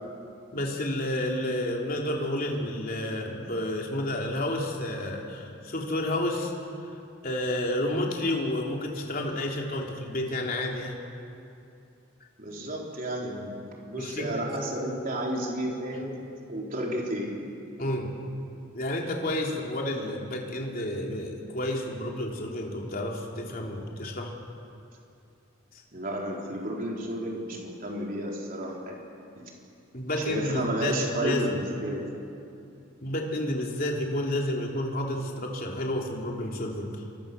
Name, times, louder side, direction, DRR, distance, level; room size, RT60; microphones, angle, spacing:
voice 1, 0.5-6.5 7.2-11.0 13.9-14.4 17.8-18.1 18.7-24.3 29.9-31.4 33.0-37.0, left 1 dB, 45° left, 0 dB, 3.4 m, -30 dB
voice 2, 12.4-16.2 16.5-17.4 25.9-29.0 29.4-29.5 30.2-32.1, right 1 dB, 45° right, -1 dB, 4.1 m, -32 dB
28.0 x 23.5 x 6.9 m, 2.6 s
head